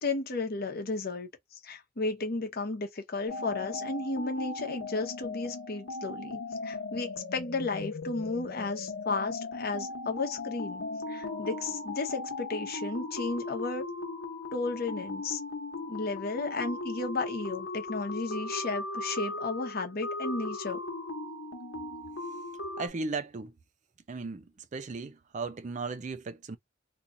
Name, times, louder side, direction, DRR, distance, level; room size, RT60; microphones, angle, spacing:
voice 1, 0.0-13.8 14.5-15.4 15.9-20.8, left 3 dB, 50° left, 0.9 m, -34 dB
sound 1, 3.3-22.9, left 2 dB, 85° left, 1.1 m, -38 dB
voice 2, 22.8-23.6 24.1-26.6, right 3 dB, 35° right, 0.4 m, -36 dB
2.9 x 2.4 x 3.8 m
head